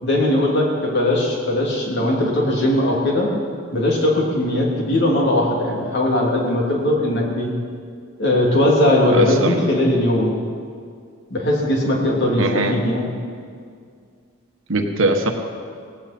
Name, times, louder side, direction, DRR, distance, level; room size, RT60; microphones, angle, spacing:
voice 1, 0.0-3.3 3.7-7.5 8.2-10.3 11.3-12.4 12.7-13.1, left 1 dB, 55° left, -2 dB, 3.1 m, -19 dB
voice 2, 9.1-9.6 12.4-12.8 14.7-15.3, right 2 dB, 65° right, 4 dB, 1.4 m, -20 dB
17.5 x 16.5 x 4.4 m, 2.2 s
head